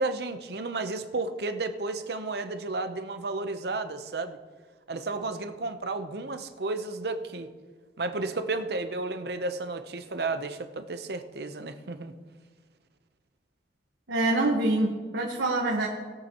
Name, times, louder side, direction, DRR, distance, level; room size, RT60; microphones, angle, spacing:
voice 1, 0.0-4.4 4.9-7.5 8.0-12.1, right 3 dB, 60° right, 9 dB, 0.8 m, -32 dB
voice 2, 14.1-15.9, right 2 dB, 90° right, -1 dB, 1.3 m, -25 dB
20.5 x 8.0 x 3.0 m, 1.5 s
head